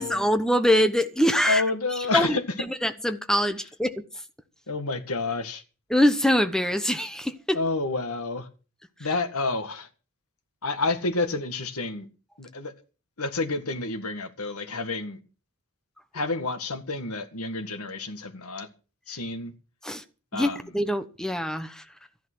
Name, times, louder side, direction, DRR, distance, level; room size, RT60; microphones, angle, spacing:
voice 1, 0.0-1.6 2.1-4.0 5.9-7.6 19.8-20.0 20.3-21.8, equal, 5° left, 1.0 m, -24 dB
voice 2, 1.5-2.4 4.7-5.6 7.5-8.5 9.0-9.9 10.6-12.1 12.4-12.7 13.2-15.2 16.1-18.7 19.1-19.5 20.3-20.6, left 3 dB, 75° left, 1.8 m, -29 dB
14.0 x 11.0 x 6.2 m
head